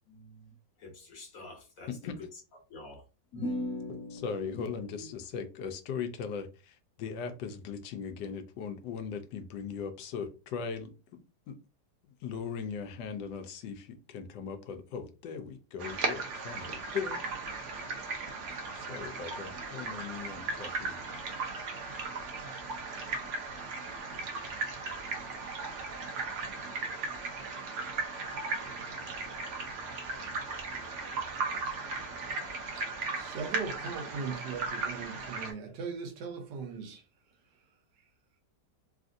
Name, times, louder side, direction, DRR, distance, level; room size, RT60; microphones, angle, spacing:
voice 1, 0.1-0.5 0.8-1.9 2.7-3.0 3.3-4.6 5.0-5.1, left 1 dB, 55° left, 1.3 m, -40 dB
voice 2, 1.9-2.3 4.1-10.9 11.5-11.6 12.2-17.2 18.7-21.0, left 6 dB, 85° left, 1.2 m, -39 dB
sound 1, 15.8-35.5, right 3 dB, 60° right, 0.8 m, -37 dB
voice 3, 33.1-37.0, right 5 dB, 85° right, 1.4 m, -39 dB
3.4 x 2.5 x 2.5 m
omnidirectional pair, 1.8 m